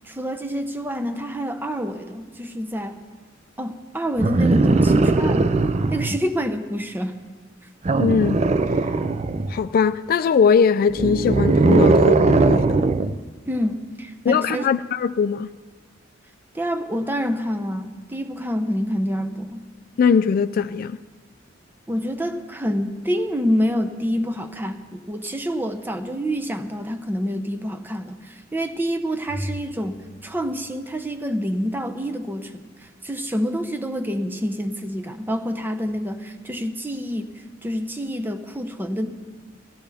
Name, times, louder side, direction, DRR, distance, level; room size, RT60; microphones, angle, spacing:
voice 1, 0.0-3.0 3.6-5.6 5.9-7.2 13.5-14.8 16.5-19.6 21.9-32.5 32.8-39.1, equal, 10° right, 0.7 m, -27 dB
sound 1, 4.2-6.2 7.8-9.6 10.9-13.2 14.5-14.6, right 3 dB, 35° right, 0.4 m, -19 dB
voice 2, 7.9-8.4 9.5-12.8 14.2-15.5 20.0-21.0, left 6 dB, 50° left, 0.3 m, -20 dB
Bowed string instrument, 29.3-31.7, equal, 85° right, 5.0 m, -37 dB
16.5 x 15.0 x 3.5 m
head